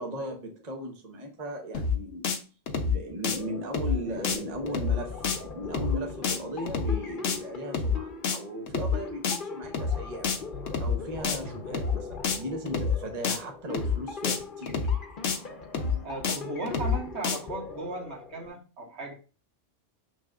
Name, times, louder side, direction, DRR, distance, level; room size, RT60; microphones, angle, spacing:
voice 1, 0.0-2.4 2.9-10.4 10.8-14.8, equal, 35° right, 2 dB, 1.1 m, -37 dB
sound 1, 1.7-2.0 2.2-2.4 2.7-3.0 3.2-3.4 3.7-4.0 4.2-4.4 4.7-5.0 5.2-5.4 5.7-6.0 6.2-6.4 6.7-7.0 7.2-7.4 7.7-8.0 8.2-8.4 8.7-9.0 9.2-9.4 9.7-10.0 10.2-10.4 10.7-11.0 11.2-11.4 11.7-12.0 12.2-12.4 12.7-13.0 13.2-13.4 13.7-14.0 14.2-14.4 14.7-15.0 15.2-15.4 15.7-16.0 16.2-16.4 16.7-17.0 17.2-17.4, left 5 dB, 85° left, 1.2 m, -27 dB
sound 2, 3.3-18.5, left 4 dB, 45° left, 1.0 m, -41 dB
voice 2, 16.0-19.1, right 2 dB, 60° right, 0 dB, 1.6 m, -36 dB
6.5 x 6.2 x 2.5 m, 0.34 s
omnidirectional pair, 1.3 m